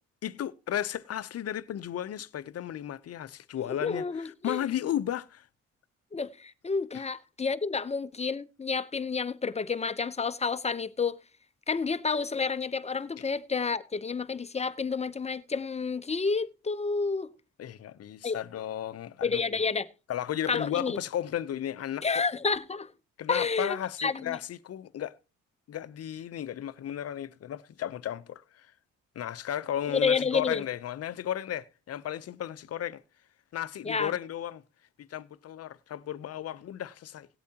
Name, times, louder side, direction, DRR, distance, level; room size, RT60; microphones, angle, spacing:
voice 1, 0.2-5.5 6.9-7.0 13.2-13.3 17.6-19.4 20.1-22.2 23.2-25.2 25.7-28.7 29.1-33.0 33.5-34.6 35.0-37.3, left 11 dB, 55° left, 0.7 m, -34 dB
voice 2, 3.8-4.6 6.1-11.2 11.7-17.3 18.2-18.4 19.2-19.9 20.5-21.0 22.0-22.9 23.3-24.4 29.9-30.6 33.8-34.1, left 5 dB, 20° left, 0.8 m, -30 dB
18.5 x 8.3 x 2.9 m
cardioid pair, 90°, 30 cm